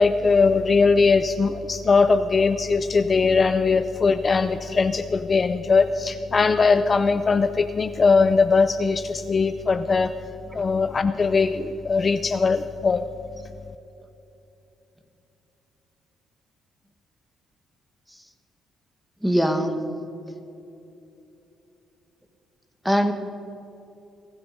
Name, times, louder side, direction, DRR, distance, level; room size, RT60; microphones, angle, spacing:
voice 1, 0.0-10.1 10.5-13.0, left 4 dB, 35° left, 10 dB, 0.6 m, -20 dB
voice 2, 19.2-19.8 22.8-23.1, equal, ahead, 6 dB, 1.8 m, -22 dB
23.0 x 10.0 x 5.3 m, 2.8 s
cardioid pair, 90°, 0 cm